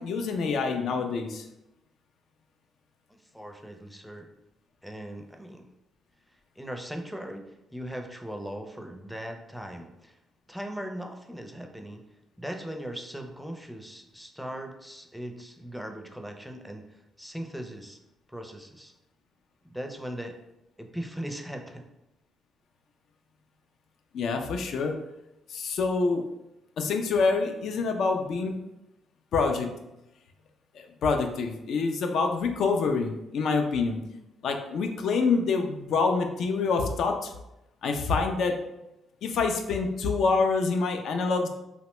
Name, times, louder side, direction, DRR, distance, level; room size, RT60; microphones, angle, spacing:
voice 1, 0.0-1.4 24.1-24.9 25.5-26.2 26.8-28.5 29.3-29.7 30.7-34.0 34.4-37.3 37.8-38.5 39.2-41.5, left 4 dB, 70° left, 4 dB, 0.4 m, -26 dB
voice 2, 3.3-4.3 4.8-5.7 6.6-10.2 10.5-12.0 12.4-18.0 18.3-18.9 19.7-20.4 20.8-21.9, equal, ahead, 3 dB, 0.4 m, -39 dB
2.8 x 2.1 x 3.0 m, 0.91 s
supercardioid pair, 65°, 0 cm